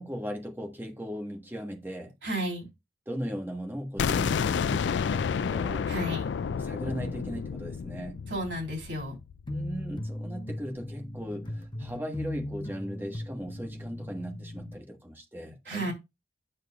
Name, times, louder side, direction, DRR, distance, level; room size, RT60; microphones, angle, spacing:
voice 1, 0.0-2.1 3.1-5.9 6.6-8.2 9.5-15.9, equal, 10° right, 1.3 m, -38 dB
voice 2, 2.2-2.7 5.9-6.3 8.3-9.1 15.6-15.9, right 1 dB, 75° right, 3.4 m, -32 dB
sound 1, 4.0-9.8, left 6 dB, 80° left, 0.3 m, -30 dB
sound 2, 9.5-14.8, left 1 dB, 25° left, 0.8 m, -38 dB
9.1 x 6.4 x 2.3 m
head